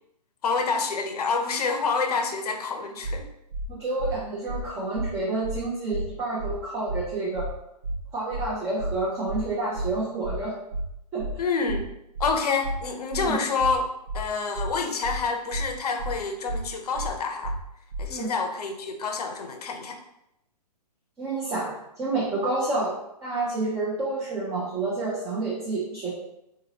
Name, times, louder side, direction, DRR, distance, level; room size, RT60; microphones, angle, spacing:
voice 1, 0.4-3.3 11.4-11.9 12.2-13.8 14.1-17.5 18.0-20.0, left 4 dB, 65° left, 4 dB, 0.7 m, -27 dB
sound 1, 3.0-3.2 3.5-3.7 4.0-4.1 4.5-4.6 4.9-5.1 5.4-5.6 5.9-6.1 6.4-6.5 6.9-7.0 7.3-7.5 7.8-8.0 8.3-8.5 8.8-8.9 9.3-9.4 9.7-9.9 10.2-10.4 10.7-10.9 11.2-11.3 11.7-11.8 12.1-12.3 12.6-12.8 13.1-13.3 13.6-13.7 14.1-14.2 14.5-14.7 15.0-15.2 15.5-15.7 16.0-16.1 16.5-16.6 16.9-17.1 17.4-17.6 17.9-18.1, right 1 dB, 60° right, 0.5 m, -31 dB
voice 2, 3.7-7.5 8.1-10.5 11.1-11.3 13.2-13.4 18.1-18.3 21.2-22.9 23.2-26.1, right 2 dB, 10° right, -7 dB, 0.5 m, -29 dB
3.8 x 2.8 x 2.8 m, 0.84 s
hypercardioid pair, 145°, 21 cm